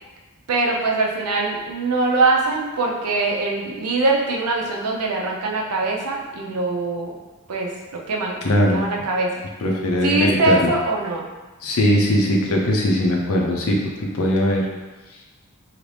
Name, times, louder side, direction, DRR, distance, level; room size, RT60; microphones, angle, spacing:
voice 1, 0.5-7.1 7.5-7.7 8.1-9.3 10.0-11.3, right 3 dB, 85° right, -1 dB, 0.6 m, -22 dB
voice 2, 8.4-8.8 9.6-10.7 11.6-14.7, left 1 dB, 70° left, -1 dB, 0.6 m, -20 dB
2.8 x 2.6 x 3.3 m, 1.2 s
head